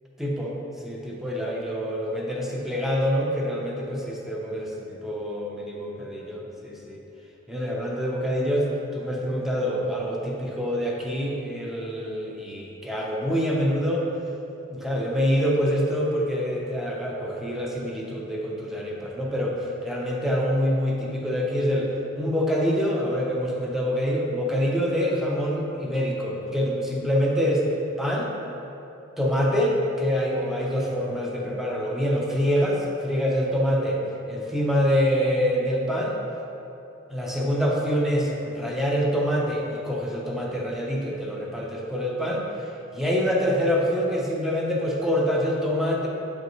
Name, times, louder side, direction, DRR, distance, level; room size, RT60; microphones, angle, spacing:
voice 1, 0.2-7.0 7.5-14.1 14.7-27.6 28.0-28.4 29.2-34.0 34.3-36.2 37.1-46.1, equal, ahead, -3 dB, 0.6 m, -26 dB
7.1 x 5.3 x 3.1 m, 2.9 s
head